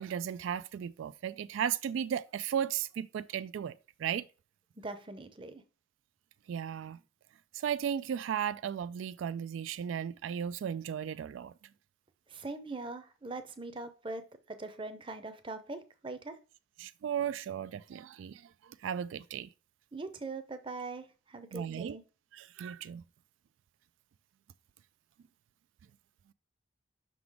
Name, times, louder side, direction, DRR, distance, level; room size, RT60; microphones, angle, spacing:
voice 1, 0.0-4.3 6.5-7.0 7.5-11.5 16.8-19.5 21.5-22.0 22.3-23.0, right 8 dB, 85° right, 0.3 m, -35 dB
voice 2, 4.8-5.6 12.3-16.3 19.9-22.0, right 3 dB, 25° right, 0.6 m, -42 dB
5.9 x 3.8 x 4.7 m
head